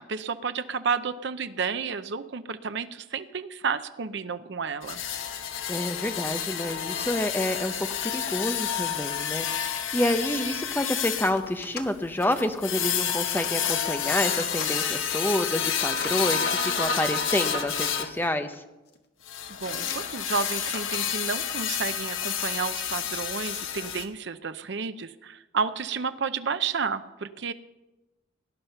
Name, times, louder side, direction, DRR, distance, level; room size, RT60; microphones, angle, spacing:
voice 1, 0.0-5.1 19.6-27.5, right 5 dB, 60° right, 11 dB, 0.7 m, -31 dB
sound 1, 4.8-18.1 19.3-24.0, left 8 dB, 85° left, 1.1 m, -29 dB
voice 2, 5.7-18.6, left 1 dB, 10° left, 8 dB, 0.8 m, -28 dB
sound 2, 10.8-10.9 11.3-11.9 12.8-13.5 13.9-14.7 15.2-16.2 17.1-17.2 18.2-18.6 18.9-19.2 19.7-21.4, left 5 dB, 55° left, 1.5 m, -41 dB
18.0 x 10.5 x 5.7 m, 1.0 s
head